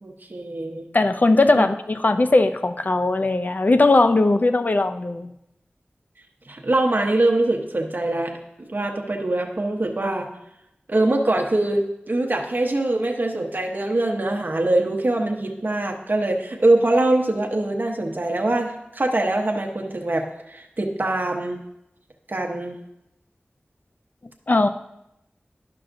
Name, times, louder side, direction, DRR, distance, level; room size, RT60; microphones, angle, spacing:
voice 1, 0.0-0.9 1.5-1.6 6.5-10.3 10.9-21.6 22.3-22.8, right 2 dB, 50° right, 2 dB, 0.9 m, -23 dB
voice 2, 0.9-5.3 24.5-24.7, left 2 dB, 45° left, 9 dB, 0.4 m, -19 dB
11.5 x 5.7 x 2.6 m, 0.84 s
wide cardioid pair, 45°, 4 cm